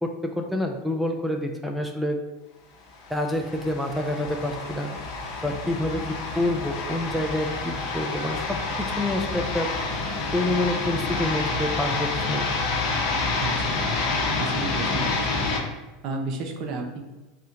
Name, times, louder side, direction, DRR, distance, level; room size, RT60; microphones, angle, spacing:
voice 1, 0.0-2.2 3.1-4.9 5.4-9.7 10.3-12.5, left 1 dB, 5° right, 3 dB, 0.4 m, -27 dB
sound 1, 3.0-15.6, left 3 dB, 55° left, 0.8 m, -28 dB
voice 2, 13.4-13.9 14.4-15.7 16.0-17.0, right 3 dB, 55° right, 3 dB, 0.5 m, -33 dB
2.7 x 2.1 x 3.6 m, 1.1 s
hypercardioid pair, 90°, 0 cm